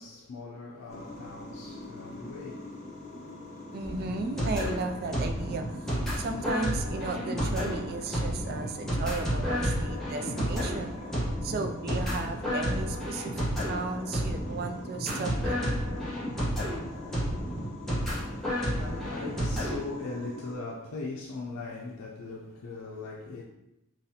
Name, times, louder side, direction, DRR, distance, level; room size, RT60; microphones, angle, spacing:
voice 1, 0.0-3.4 18.6-23.4, left 3 dB, 90° left, 0.5 m, -40 dB
sound 1, 0.9-20.5, left 1 dB, 30° left, 0.9 m, -43 dB
voice 2, 3.7-11.1 11.4-15.7, right 3 dB, 45° right, 0.3 m, -35 dB
sound 2, 3.8-19.8, equal, ahead, 1.0 m, -31 dB
4.0 x 3.0 x 2.8 m
head